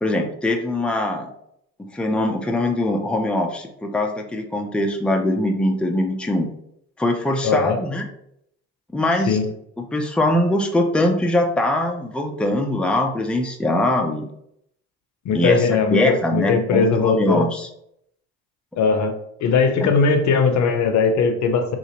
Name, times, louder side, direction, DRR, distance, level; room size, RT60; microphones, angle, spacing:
voice 1, 0.0-1.3 1.9-6.5 7.0-8.1 8.9-9.4 9.9-14.3 15.3-17.7 19.8-19.9, left 1 dB, 5° left, 3 dB, 0.5 m, -22 dB
voice 2, 7.4-7.8 9.3-9.5 15.2-17.5 18.8-19.1 19.4-21.8, left 5 dB, 65° left, 6 dB, 0.7 m, -19 dB
3.9 x 2.5 x 2.9 m, 0.72 s
supercardioid pair, 65°, 31 cm